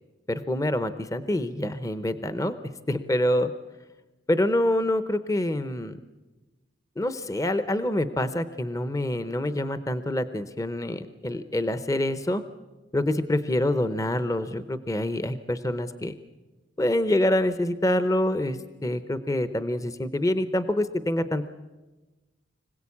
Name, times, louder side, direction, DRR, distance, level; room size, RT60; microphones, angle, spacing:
voice 1, 0.3-2.5 2.9-3.5 4.3-6.0 7.0-12.4 12.9-16.1 16.8-21.5, left 1 dB, 20° left, 11 dB, 0.8 m, -26 dB
25.5 x 17.0 x 8.5 m, 1.2 s
head